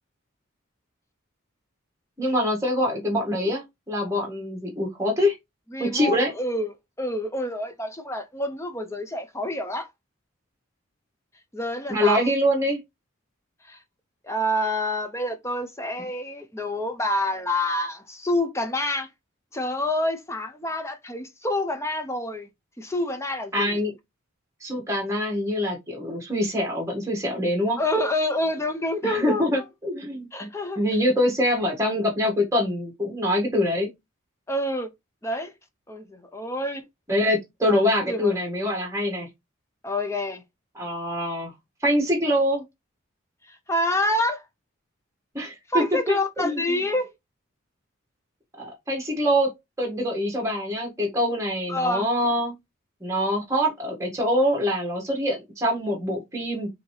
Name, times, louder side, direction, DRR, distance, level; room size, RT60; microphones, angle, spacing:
voice 1, 2.2-5.4 5.8-6.3 11.9-12.8 23.5-23.9 24.6-27.8 29.0-30.5 30.7-33.9 37.1-39.3 40.7-41.5 41.8-42.6 45.3-46.8 48.6-49.5 49.8-52.6 53.0-56.7, equal, 15° right, 1.5 m, -24 dB
voice 2, 5.7-6.7 7.0-9.9 11.5-12.3 13.7-13.8 14.2-19.1 19.5-22.5 22.8-23.8 27.8-29.6 30.3-30.8 34.5-34.9 35.2-35.5 35.9-36.8 37.6-37.8 38.1-38.3 39.8-40.4 43.5-44.4 45.7-47.1 51.7-52.1, left 1 dB, 15° left, 0.5 m, -27 dB
5.1 x 2.8 x 3.1 m
head